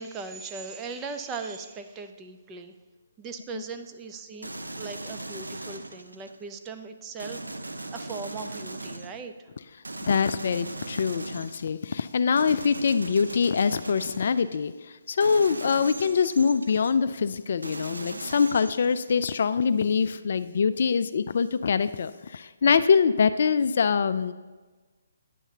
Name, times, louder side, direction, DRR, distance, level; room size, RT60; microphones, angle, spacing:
voice 1, 0.0-2.7 3.2-4.5 4.8-9.5, right 4 dB, 20° right, 7 dB, 0.5 m, -39 dB
sound 1, 4.4-6.4 7.2-9.3 9.8-11.8 12.4-14.6 15.2-16.9 17.6-19.3, right 2 dB, 90° right, 0.5 m, -39 dB
voice 2, 10.1-24.3, left 6 dB, 55° left, 12 dB, 0.3 m, -24 dB
10.0 x 7.1 x 2.8 m, 1.3 s
figure-of-eight pair, 145°, 0 cm